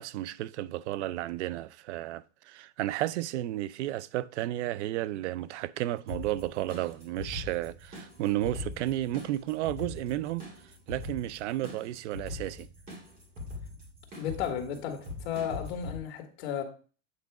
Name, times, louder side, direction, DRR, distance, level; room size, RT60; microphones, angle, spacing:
voice 1, 0.0-10.5 10.9-12.7, right 14 dB, 75° right, 0.5 m, -33 dB
sound 1, 6.1-16.0, left 2 dB, 25° right, 2.3 m, -42 dB
voice 2, 14.2-16.6, left 8 dB, 60° left, 1.7 m, -34 dB
8.6 x 3.9 x 4.7 m
supercardioid pair, 165°, 35 cm